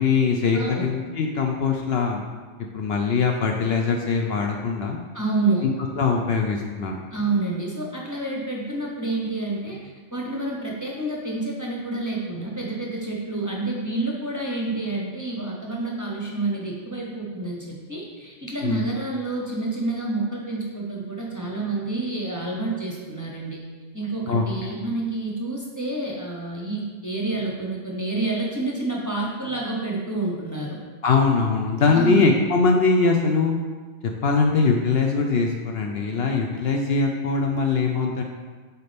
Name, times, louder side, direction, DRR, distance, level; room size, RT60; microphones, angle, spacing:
voice 1, 0.0-2.2 2.7-5.0 5.6-5.7 6.0-7.0 18.6-18.9 24.3-24.4 31.0-33.5 34.2-38.2, left 4 dB, 65° left, 2 dB, 0.7 m, -22 dB
voice 2, 0.5-0.9 5.1-5.7 7.1-23.6 23.9-30.8 31.9-32.3, right 2 dB, 15° right, -3 dB, 0.8 m, -28 dB
8.1 x 4.2 x 3.4 m, 1.4 s
omnidirectional pair, 1.3 m